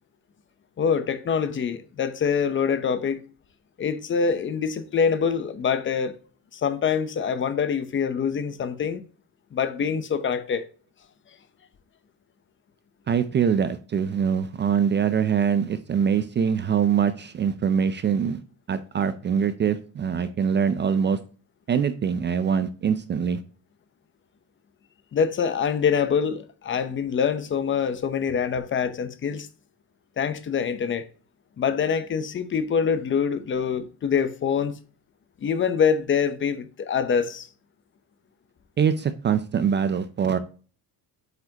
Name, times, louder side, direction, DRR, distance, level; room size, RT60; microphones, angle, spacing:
voice 1, 0.8-3.2 3.8-6.2 6.5-9.0 9.5-10.7 25.1-29.5 30.2-31.1 31.6-34.7 35.4-37.5, left 6 dB, 30° left, 0.7 m, -25 dB
voice 2, 13.1-18.4 18.7-21.2 21.7-23.4 38.8-40.4, right 7 dB, 25° right, 0.4 m, -23 dB
7.8 x 4.7 x 2.8 m
cardioid pair, 130°, 42 cm